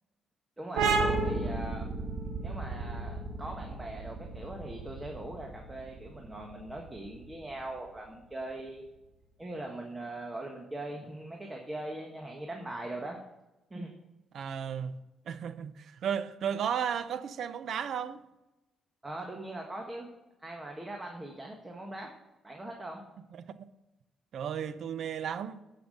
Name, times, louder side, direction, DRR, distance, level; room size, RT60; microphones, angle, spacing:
voice 1, 0.6-1.9 2.4-8.9 9.4-13.2 13.7-13.9 19.0-20.1 20.4-22.1 22.4-23.0, right 1 dB, 20° right, 1.5 m, -41 dB
sound 1, 0.8-8.1, right 3 dB, 85° right, 1.7 m, -33 dB
voice 2, 14.3-14.9 15.3-18.2 23.3-23.5 24.3-25.6, right 8 dB, 65° right, 0.7 m, -34 dB
10.5 x 5.8 x 6.6 m
cardioid pair, 90°, 0 cm